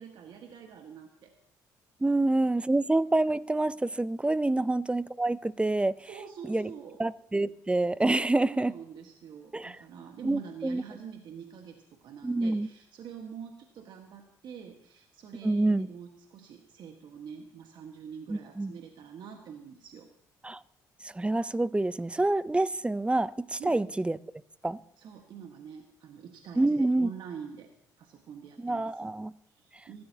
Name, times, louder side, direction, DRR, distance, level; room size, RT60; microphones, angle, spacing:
voice 1, 0.0-1.3 2.1-2.2 4.5-4.7 6.0-7.0 8.4-20.1 23.6-23.9 25.0-27.7 28.0-29.1 29.5-30.0, right 7 dB, 60° right, 1.5 m, -46 dB
voice 2, 2.0-6.1 6.5-6.7 7.0-8.7 9.5-9.8 10.2-10.8 12.2-12.7 15.4-15.9 18.3-18.8 20.4-20.6 21.0-24.2 24.6-24.8 26.6-27.1 28.6-29.3, right 2 dB, 10° right, 0.5 m, -27 dB
24.0 x 13.0 x 2.9 m
hypercardioid pair, 60°, 9 cm